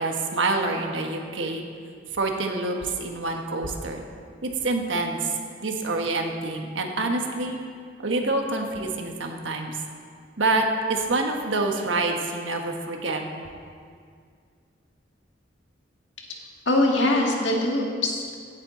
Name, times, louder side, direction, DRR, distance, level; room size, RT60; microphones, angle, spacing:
voice 1, 0.0-1.6 2.1-4.0 4.4-5.3 5.6-7.6 8.0-9.8 10.4-13.2, right 2 dB, 85° right, 3 dB, 1.3 m, -26 dB
voice 2, 16.7-18.4, left 2 dB, 70° left, 0 dB, 1.7 m, -23 dB
16.0 x 9.0 x 3.9 m, 2.1 s
head